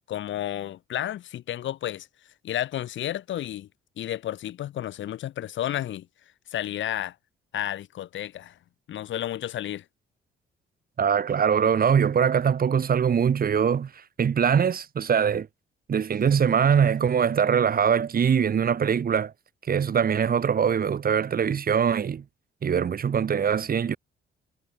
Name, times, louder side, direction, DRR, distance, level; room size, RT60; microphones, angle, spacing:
voice 1, 0.1-2.1 2.4-3.7 4.0-6.1 6.5-7.1 7.5-8.6 8.9-9.8, left 12 dB, 70° left, 1.6 m, -31 dB
voice 2, 11.0-13.9 14.2-15.5 15.9-19.3 19.7-22.2 22.6-24.0, right 7 dB, 50° right, 2.6 m, -22 dB
cardioid pair, 90°, 20 cm